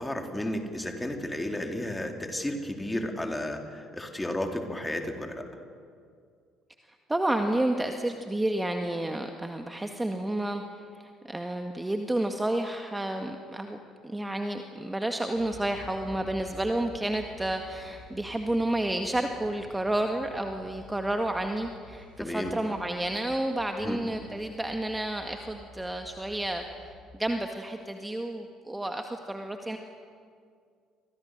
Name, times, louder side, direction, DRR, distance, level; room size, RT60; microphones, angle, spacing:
voice 1, 0.0-5.5 22.2-22.5 23.8-24.0, left 1 dB, 10° left, 3 dB, 3.8 m, -33 dB
voice 2, 7.1-10.6 10.9-13.8 14.0-26.6 27.2-29.8, right 1 dB, 10° right, 5 dB, 1.8 m, -30 dB
sound 1, 15.3-27.0, left 1 dB, 80° right, 5.7 m, -50 dB
30.0 x 25.0 x 6.7 m, 2.2 s
figure-of-eight pair, 55°, 0 cm